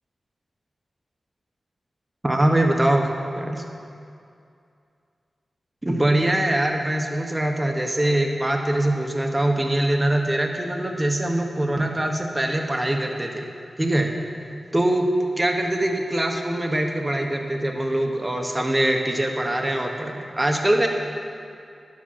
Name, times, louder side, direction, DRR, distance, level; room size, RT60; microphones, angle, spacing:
voice 1, 2.2-3.1 3.4-3.6 5.8-13.5 13.8-14.1 14.7-15.1 15.4-20.9, right 1 dB, 20° right, 2 dB, 1.0 m, -23 dB
11.0 x 7.7 x 5.6 m, 2.5 s
cardioid pair, 60°, 0 cm